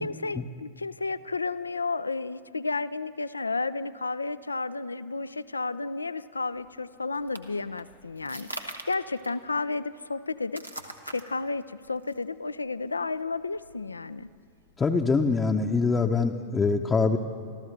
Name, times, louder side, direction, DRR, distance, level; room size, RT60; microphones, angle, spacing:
voice 1, 0.0-10.6 11.1-14.3, left 3 dB, 80° left, 16 dB, 0.4 m, -32 dB
sound 1, 6.5-15.1, right 1 dB, 90° right, 1.1 m, -45 dB
voice 2, 14.8-17.2, left 4 dB, 15° left, 2 dB, 0.7 m, -24 dB
26.5 x 14.0 x 3.4 m, 2.3 s
figure-of-eight pair, 90°, 0 cm